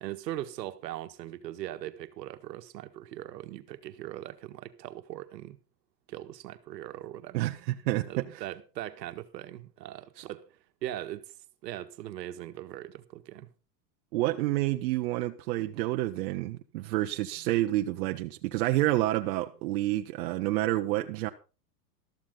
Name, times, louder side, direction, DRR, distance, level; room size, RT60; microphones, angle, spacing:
voice 1, 0.0-5.6 6.1-7.5 8.1-11.3 11.6-13.5, right 13 dB, 80° right, 1.7 m, -40 dB
voice 2, 7.8-8.4 10.2-10.3 14.1-21.3, right 16 dB, 60° right, 1.1 m, -29 dB
13.5 x 13.5 x 3.8 m
supercardioid pair, 130°, 49 cm